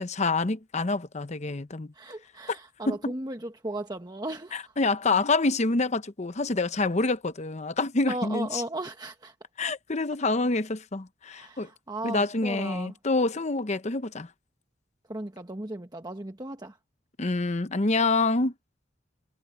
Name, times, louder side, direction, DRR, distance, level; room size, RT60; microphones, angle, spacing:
voice 1, 0.0-1.9 2.9-3.1 4.5-8.6 9.6-11.7 12.0-14.3 17.2-18.5, left 3 dB, 35° left, 0.8 m, -27 dB
voice 2, 1.9-4.7 8.1-9.3 11.3-12.9 15.1-16.8, right 1 dB, 20° right, 1.2 m, -36 dB
head